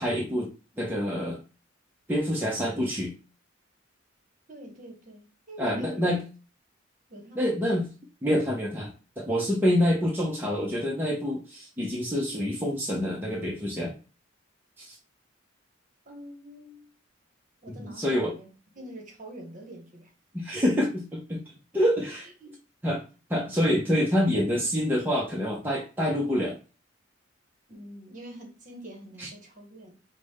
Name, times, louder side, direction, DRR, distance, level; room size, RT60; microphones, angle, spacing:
voice 1, 0.0-1.4 2.1-3.1 5.6-6.2 7.3-7.9 8.2-14.0 14.8-15.0 17.8-18.3 20.3-21.4 21.7-22.3 22.8-23.0 23.3-26.6 29.2-29.3, equal, 10° right, 0.6 m, -27 dB
voice 2, 4.5-6.1 7.1-7.5 16.0-16.9 17.6-18.5 18.7-20.1 22.4-22.5 27.7-29.9, equal, 40° right, 1.1 m, -44 dB
4.9 x 2.1 x 3.5 m
head